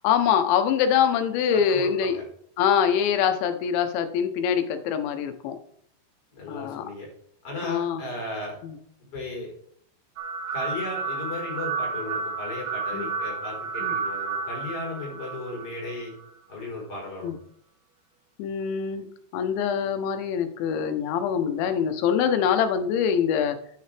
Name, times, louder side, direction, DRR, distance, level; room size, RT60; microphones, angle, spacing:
voice 1, 0.0-2.2 2.6-5.6 6.5-6.8 7.6-8.0 8.6-8.8 12.9-13.1 13.8-13.9 17.2-17.4 18.4-19.1 19.3-23.6, left 8 dB, 85° left, 8 dB, 3.3 m, -24 dB
voice 2, 1.5-2.2 6.3-7.1 7.4-8.6 9.1-9.5 10.5-16.1 16.5-17.3, left 2 dB, 35° left, -1 dB, 4.9 m, -35 dB
sound 1, 10.2-16.3, right 5 dB, 70° right, 2.5 m, -31 dB
9.6 x 9.3 x 3.4 m, 0.66 s
omnidirectional pair, 5.2 m